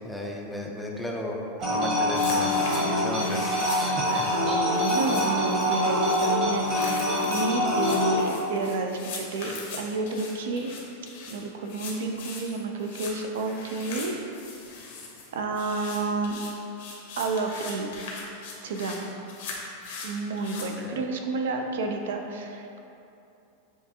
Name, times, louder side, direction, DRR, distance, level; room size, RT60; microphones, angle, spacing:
voice 1, 0.0-1.4 1.7-4.2 20.8-21.0, left 1 dB, 5° left, -1 dB, 0.4 m, -35 dB
sound 1, 1.6-8.2, left 1 dB, 35° right, 1.0 m, -25 dB
sound 2, 2.1-20.6, left 4 dB, 70° left, 0.9 m, -40 dB
voice 2, 4.1-10.7 11.3-14.2 15.3-16.4 17.2-17.9 18.6-19.1 20.0-22.8, right 3 dB, 85° right, 3 dB, 0.4 m, -30 dB
6.9 x 2.5 x 2.8 m, 2.7 s
supercardioid pair, 155°, 0 cm